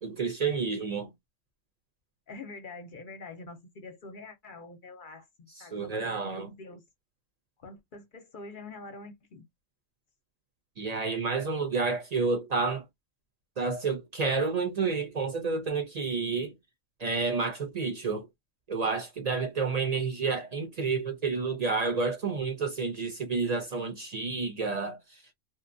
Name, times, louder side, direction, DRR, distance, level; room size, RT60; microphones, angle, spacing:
voice 1, 0.0-1.1 5.6-6.5 10.8-12.8 13.6-16.5 17.0-18.3 18.7-25.3, right 4 dB, 55° right, 0.4 m, -30 dB
voice 2, 2.3-6.8 7.6-9.4, left 3 dB, 50° left, 0.6 m, -45 dB
2.7 x 2.2 x 2.5 m
omnidirectional pair, 1.4 m